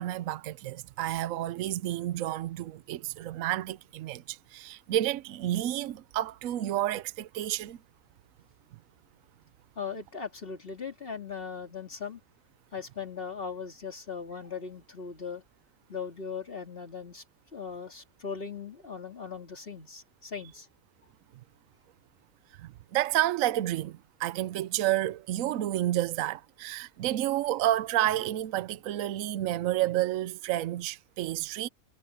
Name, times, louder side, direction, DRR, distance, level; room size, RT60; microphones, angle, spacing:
voice 1, 0.0-7.8 22.6-31.7, right 13 dB, 75° right, 1.0 m, -30 dB
voice 2, 9.8-12.2 12.7-15.4 15.9-17.2 17.5-20.7, left 6 dB, 40° left, 2.8 m, -39 dB
omnidirectional pair, 1.5 m